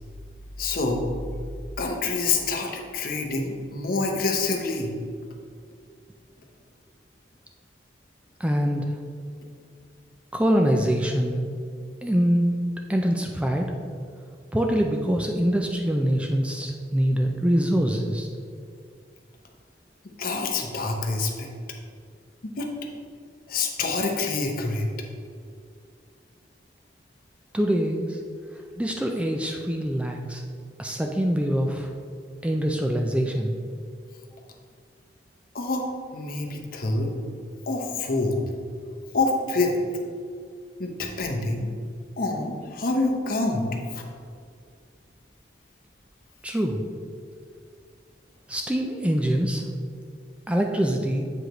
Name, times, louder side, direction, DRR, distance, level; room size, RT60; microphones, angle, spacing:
voice 1, 0.6-1.0 1.8-5.0 20.2-21.5 22.4-22.7 23.5-24.9 35.5-37.1 37.7-38.4 39.1-39.7 40.8-41.7 42.2-44.0, left 3 dB, 55° left, 2 dB, 0.8 m, -26 dB
voice 2, 8.4-9.0 10.3-11.4 12.0-12.5 12.9-13.7 14.5-18.3 27.5-28.2 28.8-30.4 30.8-31.9 32.4-33.5 46.4-46.8 48.5-49.6 50.5-51.2, equal, 5° right, 2 dB, 0.3 m, -24 dB
7.8 x 4.8 x 3.0 m, 2.2 s
head